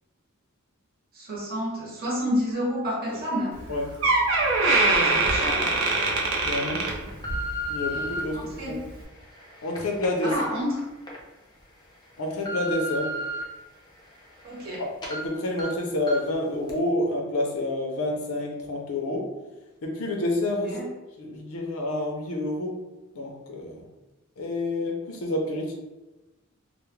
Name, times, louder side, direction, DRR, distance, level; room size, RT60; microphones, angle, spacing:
voice 1, 1.2-3.5 4.6-5.8 8.3-8.8 10.2-10.9 14.4-14.8 20.6-20.9, equal, 45° right, -5 dB, 0.9 m, -30 dB
Door, 3.6-3.7 4.0-7.5 7.9-8.2 8.9-9.0, right 3 dB, 70° right, 0.5 m, -23 dB
sound 1, 4.9-5.0 5.6-6.0 6.6-8.2 8.9-11.2 11.6-11.7 12.1-13.4 13.9-14.8 15.0-15.2 15.6-15.7 16.1-16.3 16.7-16.8, equal, 20° left, 0.4 m, -35 dB
voice 2, 6.4-6.8 7.7-8.4 8.7-8.8 9.6-10.3 12.2-13.1 14.8-19.3 19.8-20.7 21.2-22.7 23.1-23.8 24.4-25.7, left 1 dB, 85° left, 1 dB, 0.5 m, -28 dB
2.3 x 2.1 x 3.0 m, 1.1 s
head